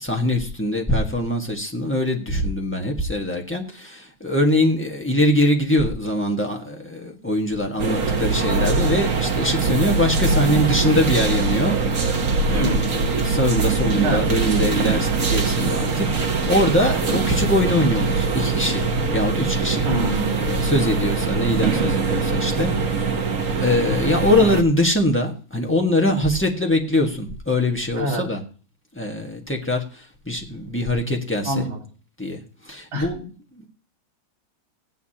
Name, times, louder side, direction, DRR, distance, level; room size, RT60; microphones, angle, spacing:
voice 1, 0.0-11.8 12.5-18.9 19.1-19.9 20.4-23.1 23.6-28.4 28.9-31.6 32.2-33.7, left 1 dB, 5° left, 0 dB, 1.1 m, -23 dB
sound 1, 7.8-24.6, right 4 dB, 45° right, 1.4 m, -22 dB
voice 2, 12.5-12.9 14.0-14.2 19.8-20.4 28.0-28.2 31.4-31.8 32.9-33.1, right 1 dB, 75° right, -2 dB, 3.3 m, -25 dB
16.0 x 9.4 x 2.9 m, 0.39 s
omnidirectional pair, 2.2 m